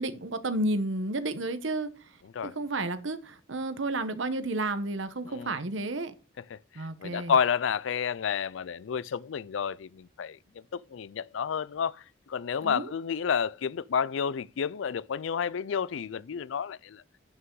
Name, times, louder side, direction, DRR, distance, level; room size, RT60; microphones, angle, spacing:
voice 1, 0.0-1.9 2.4-6.1 6.7-7.4 12.6-12.9, right 2 dB, 70° right, 1.1 m, -31 dB
voice 2, 7.0-10.4 10.9-12.0 12.3-17.0, left 7 dB, 75° left, 0.4 m, -30 dB
11.0 x 5.6 x 3.8 m
head